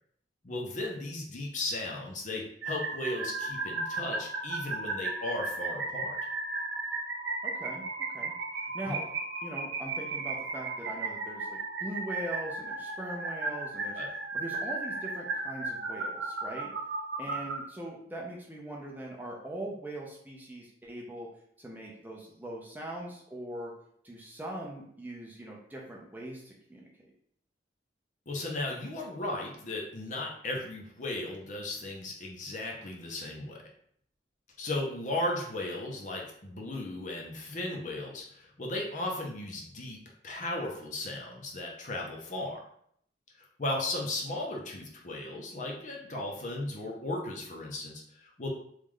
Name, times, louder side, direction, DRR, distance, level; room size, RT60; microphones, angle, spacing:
voice 1, 0.4-6.2 8.9-9.0 13.9-14.1 28.3-33.6 34.6-40.0 40.2-42.6 43.4-48.5, left 2 dB, 40° left, 0 dB, 0.6 m, -36 dB
sound 1, 2.6-17.6, right 3 dB, 75° right, 0.6 m, -35 dB
voice 2, 7.4-8.3 8.6-9.1 9.4-16.7 17.2-21.3 21.6-23.7 24.0-26.9, right 1 dB, 10° right, -3 dB, 0.5 m, -41 dB
3.1 x 2.4 x 3.6 m, 0.67 s
head